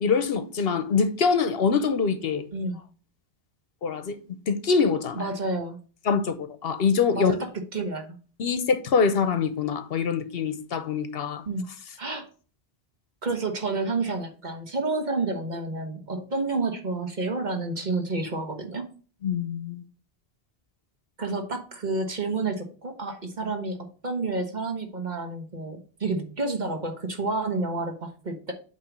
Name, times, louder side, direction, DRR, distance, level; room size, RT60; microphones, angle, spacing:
voice 1, 0.0-2.4 3.8-4.2 4.5-5.2 6.1-7.3 8.4-11.4 19.2-19.8, left 5 dB, 65° left, 0.9 m, -24 dB
voice 2, 5.2-5.8 7.1-8.2 11.5-11.6 12.0-12.2 13.2-18.8 21.2-23.8 24.0-28.5, right 3 dB, 45° right, 1.3 m, -29 dB
8.3 x 3.0 x 6.0 m
omnidirectional pair, 1.1 m